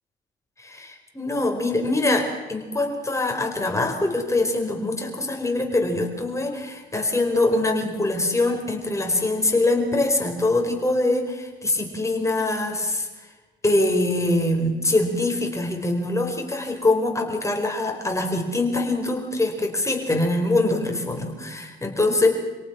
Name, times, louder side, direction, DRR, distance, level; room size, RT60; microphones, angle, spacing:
voice 1, 0.6-13.1 13.6-22.4, left 2 dB, 15° left, 2 dB, 4.8 m, -23 dB
27.5 x 18.0 x 6.2 m, 1.3 s
cardioid pair, 90°, 20 cm